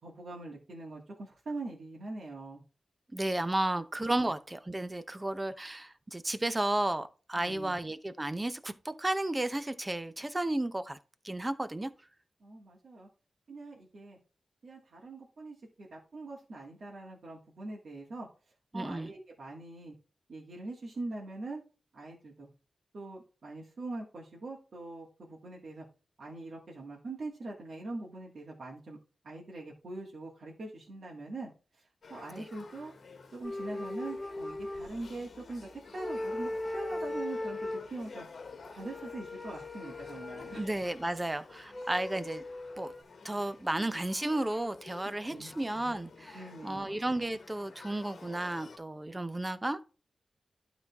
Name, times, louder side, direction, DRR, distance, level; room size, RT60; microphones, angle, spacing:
voice 1, 0.0-2.6 4.2-4.3 7.3-7.7 12.4-13.1 13.5-14.2 14.6-18.3 18.7-19.9 20.3-21.6 21.9-22.5 22.9-25.8 26.2-29.0 29.2-31.5 32.1-32.9 33.3-38.2 38.7-40.6 45.3-45.5 46.3-46.9, right 2 dB, 65° right, 2.2 m, -43 dB
voice 2, 3.1-11.0 11.2-11.9 18.7-19.1 32.4-32.5 40.5-42.4 42.8-42.9 43.2-49.8, right 1 dB, 20° right, 0.7 m, -33 dB
Male speech man speaking / Child speech kid speaking / Conversation, 32.0-48.8, left 4 dB, 70° left, 1.2 m, -51 dB
sound 1, 33.4-35.5 35.9-37.9 38.8-40.7 41.7-43.0, left 2 dB, 20° left, 1.8 m, -38 dB
12.0 x 4.0 x 3.5 m
wide cardioid pair, 90°, 0 cm